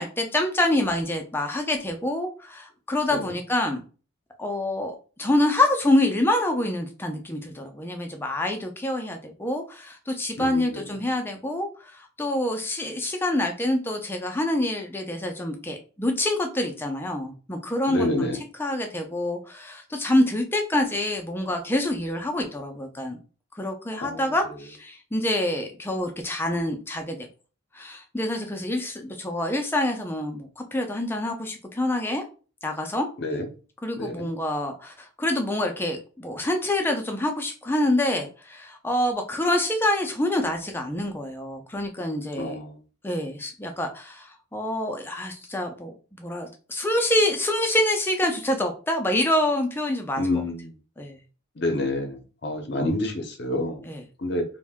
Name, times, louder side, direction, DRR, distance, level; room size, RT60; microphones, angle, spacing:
voice 1, 0.0-3.8 4.4-23.2 23.6-27.3 27.7-32.2 32.6-33.1 33.8-42.6 43.0-50.4 51.0-51.2 53.8-54.0, left 1 dB, 10° left, 4 dB, 0.4 m, -26 dB
voice 2, 10.4-10.8 17.9-18.4 24.0-24.2 33.2-33.5 34.0-34.3 42.3-42.7 50.2-50.7 51.6-53.8 54.2-54.4, left 2 dB, 50° left, 5 dB, 0.6 m, -27 dB
2.6 x 2.1 x 3.4 m, 0.37 s
head